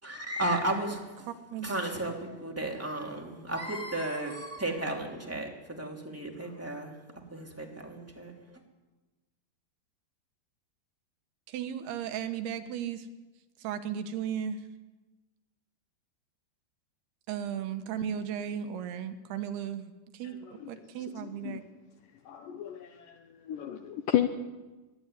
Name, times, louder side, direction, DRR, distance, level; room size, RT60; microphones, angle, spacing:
voice 1, 0.0-1.3 1.6-7.0 7.3-8.6, right 1 dB, 5° right, 1 dB, 2.2 m, -34 dB
voice 2, 1.3-1.7 11.5-13.1 13.6-14.6 17.3-20.4 20.7-21.6, right 8 dB, 75° right, 9 dB, 3.0 m, -35 dB
voice 3, 21.2-21.6 22.3-23.2 23.5-24.3, left 12 dB, 75° left, 8 dB, 2.1 m, -31 dB
23.0 x 12.0 x 9.9 m, 1.2 s
omnidirectional pair, 4.8 m